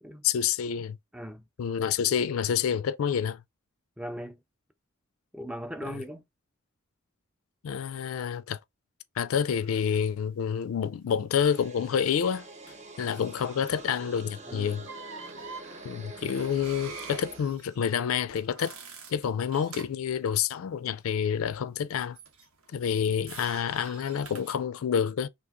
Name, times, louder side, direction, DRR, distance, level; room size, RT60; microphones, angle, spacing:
voice 1, 0.2-1.0 1.6-3.4 5.9-6.0 7.6-8.6 9.2-12.5 13.0-14.8 15.8-18.7 19.1-22.2 22.7-25.3, left 8 dB, 80° left, 0.3 m, -28 dB
voice 2, 1.1-1.4 4.0-4.4 5.3-6.2 14.5-14.8, equal, 5° right, 0.3 m, -38 dB
sound 1, 9.6-9.8 12.7-12.8 13.1-14.1 14.7-20.1 22.2-24.6, right 5 dB, 80° right, 0.9 m, -46 dB
sound 2, 11.3-17.4, right 2 dB, 35° right, 0.9 m, -45 dB
2.9 x 2.8 x 3.5 m
head